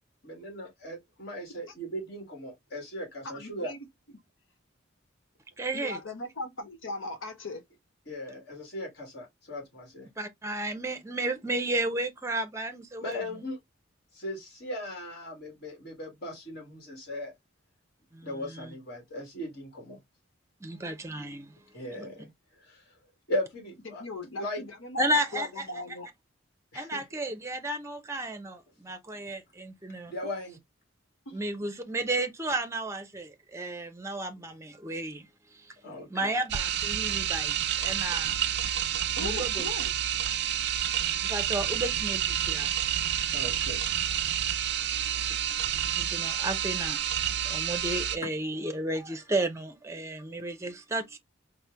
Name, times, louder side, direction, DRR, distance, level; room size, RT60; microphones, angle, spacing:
voice 1, 0.3-3.7 8.1-10.1 13.0-13.6 14.1-17.3 18.2-20.0 21.7-22.3 22.6-23.0 23.3-24.0 24.4-24.6 26.7-27.0 30.1-30.6 35.8-36.3 43.3-43.8 45.1-45.4 47.6-47.7, left 1 dB, 55° left, 1.5 m, -38 dB
voice 2, 3.2-3.9 5.7-7.6 23.8-26.1 31.3-31.4 39.2-39.9, left 2 dB, 85° left, 1.0 m, -38 dB
voice 3, 5.6-6.0 10.2-13.2 18.1-18.7 20.6-21.5 21.9-22.1 25.0-25.6 26.7-30.1 31.3-35.3 35.5-35.7 36.1-38.4 39.2-39.7 41.3-42.7 44.9-45.1 46.0-47.1 47.4-51.2, right 1 dB, 15° right, 0.6 m, -33 dB
sound 1, 36.5-48.2, right 10 dB, 55° right, 0.4 m, -29 dB
4.3 x 2.1 x 3.3 m
head